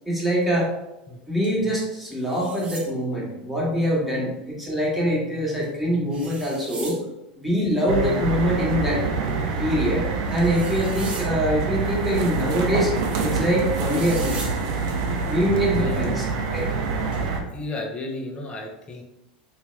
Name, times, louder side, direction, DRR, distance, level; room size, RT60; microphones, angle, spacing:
voice 1, 0.1-0.7 1.3-7.0 7.4-9.0 9.6-10.0 10.3-12.9 13.2-14.5 15.3-16.7, equal, 5° right, -5 dB, 1.4 m, -24 dB
sound 1, 1.4-1.5 1.9-2.9 5.6-5.7 6.1-7.0 9.9-10.0 10.3-11.3 13.4-13.5 13.9-14.6 17.1-17.2, right 3 dB, 25° right, 1.0 m, -39 dB
sound 2, 7.9-17.4, right 4 dB, 65° right, 0.7 m, -26 dB
voice 2, 15.8-16.1 17.5-19.0, left 2 dB, 25° left, 1 dB, 0.7 m, -33 dB
3.5 x 2.8 x 3.3 m, 0.92 s
hypercardioid pair, 105°, 5 cm